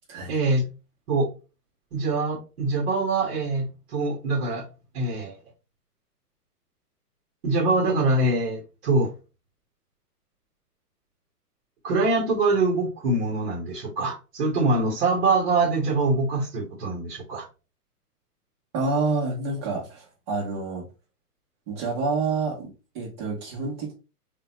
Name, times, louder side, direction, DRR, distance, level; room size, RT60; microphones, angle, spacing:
voice 1, 0.3-0.7 1.1-1.3 1.9-4.7 4.9-5.4 7.4-9.1 11.8-17.5, right 2 dB, 45° right, 0.9 m, -24 dB
voice 2, 18.7-20.8 21.7-23.9, right 3 dB, 20° right, 0.6 m, -28 dB
3.3 x 2.2 x 2.8 m
hypercardioid pair, 150°, 47 cm